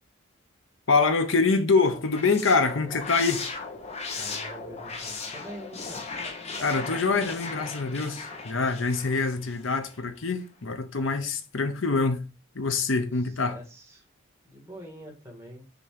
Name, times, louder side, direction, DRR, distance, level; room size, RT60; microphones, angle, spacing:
voice 1, 0.9-3.5 6.6-12.2 12.5-13.6, left 4 dB, 75° left, 0.9 m, -25 dB
sound 1, 1.9-10.0, left 4 dB, 35° left, 1.1 m, -37 dB
voice 2, 4.2-6.0 13.2-14.0 14.4-15.6, right 1 dB, 15° right, 1.9 m, -44 dB
6.2 x 3.0 x 5.0 m
head